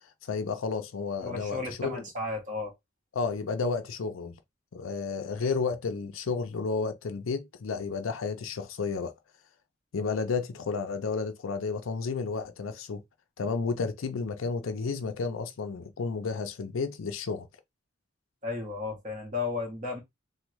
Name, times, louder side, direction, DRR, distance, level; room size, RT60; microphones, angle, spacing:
voice 1, 0.2-2.0 3.1-4.4 4.7-9.1 9.9-13.0 13.4-17.5, left 4 dB, 80° left, 0.5 m, -32 dB
voice 2, 1.2-2.7 18.4-20.0, left 3 dB, 40° right, 1.4 m, -34 dB
3.5 x 2.2 x 3.0 m
head